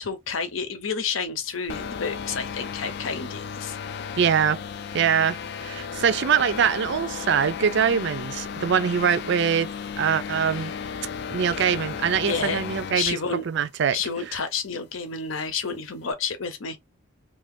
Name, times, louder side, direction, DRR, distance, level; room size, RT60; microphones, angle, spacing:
voice 1, 0.0-3.8 10.5-10.7 12.3-12.6 12.9-13.5 13.9-16.8, left 5 dB, 85° left, 0.8 m, -30 dB
sound 1, 1.7-13.1, left 6 dB, 55° left, 0.3 m, -34 dB
voice 2, 4.2-4.6 4.9-9.7 10.0-10.7 11.3-13.2 13.5-14.0 14.3-14.4, right 7 dB, 60° right, 0.4 m, -23 dB
2.9 x 2.5 x 3.7 m
head